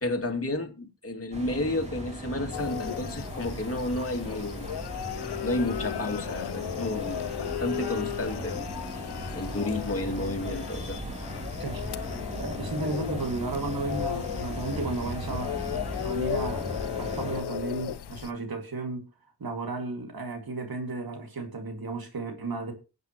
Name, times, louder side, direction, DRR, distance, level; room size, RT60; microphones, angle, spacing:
voice 1, 0.0-4.7 5.4-8.7 9.3-11.0, left 2 dB, 35° left, 2.5 m, -31 dB
sound 1, 1.3-17.4, right 1 dB, 15° right, 3.2 m, -38 dB
sound 2, 2.5-18.3, left 11 dB, 90° left, 0.6 m, -35 dB
voice 2, 12.3-16.7 17.0-19.1 19.4-22.7, right 3 dB, 65° right, 2.3 m, -34 dB
23.0 x 8.0 x 3.0 m
cardioid pair, 50°, 39 cm